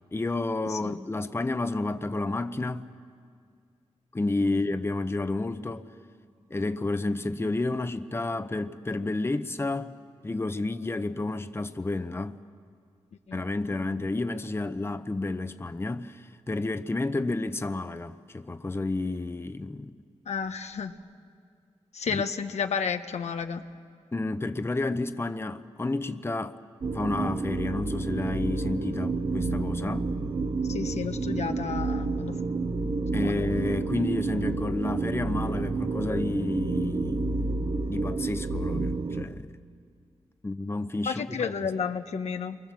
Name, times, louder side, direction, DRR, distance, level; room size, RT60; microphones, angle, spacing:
voice 1, 0.1-2.9 4.1-5.9 6.5-10.0 10.2-12.4 13.3-19.9 22.1-22.2 24.1-26.6 26.9-30.2 33.1-37.3 37.9-39.5 40.4-41.7, left 2 dB, 20° left, 0.9 m, -30 dB
voice 2, 20.3-21.0 21.9-23.6 30.7-32.3 33.2-33.3 41.1-42.6, left 6 dB, 80° left, 1.1 m, -31 dB
sound 1, 26.8-39.2, right 3 dB, 50° right, 1.2 m, -29 dB
29.5 x 23.5 x 7.5 m
cardioid pair, 80°, 11 cm